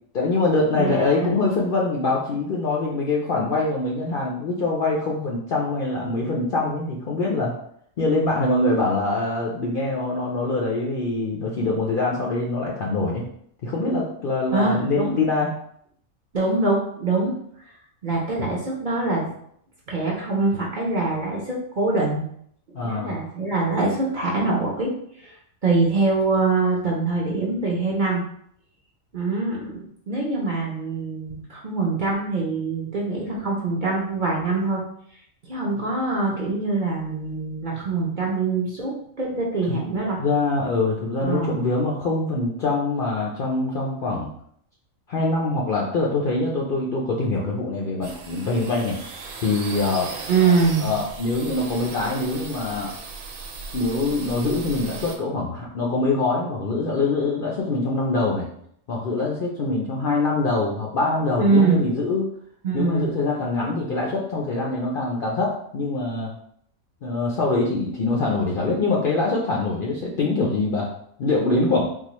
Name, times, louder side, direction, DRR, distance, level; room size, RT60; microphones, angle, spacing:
voice 1, 0.1-7.5 8.0-13.2 13.6-15.5 22.7-23.2 39.7-39.8 40.2-44.3 45.1-50.1 50.8-52.9 53.7-58.5 58.9-62.3 62.7-66.3 67.0-70.9 71.2-71.9, left 3 dB, 60° left, -3 dB, 0.6 m, -24 dB
voice 2, 0.8-1.3 14.5-15.2 16.3-17.3 18.0-19.3 19.9-22.2 22.8-24.9 25.2-25.3 25.6-28.2 29.1-34.8 35.5-40.2 41.2-41.7 50.3-50.9 61.4-61.8 62.6-63.1, right 3 dB, 45° right, -3 dB, 0.7 m, -24 dB
sound 1, 48.0-55.2, right 4 dB, 75° right, 1.0 m, -37 dB
3.9 x 2.4 x 3.0 m, 0.67 s
omnidirectional pair, 1.4 m